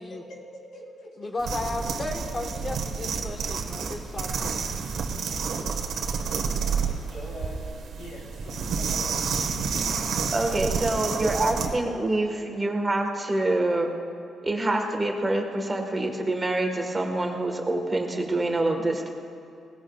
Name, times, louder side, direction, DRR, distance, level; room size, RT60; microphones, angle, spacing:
voice 1, 0.0-1.3 5.1-5.2 5.6-5.7 7.1-9.8 12.1-12.3, left 1 dB, 85° left, -4 dB, 3.9 m, -44 dB
voice 2, 1.2-4.5, left 2 dB, 25° left, 3 dB, 1.2 m, -34 dB
sound 1, 1.4-11.8, right 5 dB, 70° right, 1.4 m, -29 dB
voice 3, 10.3-13.9 14.4-19.1, right 2 dB, 20° right, 3 dB, 1.4 m, -26 dB
20.5 x 18.5 x 2.3 m, 2.6 s
cardioid pair, 150°, 0 cm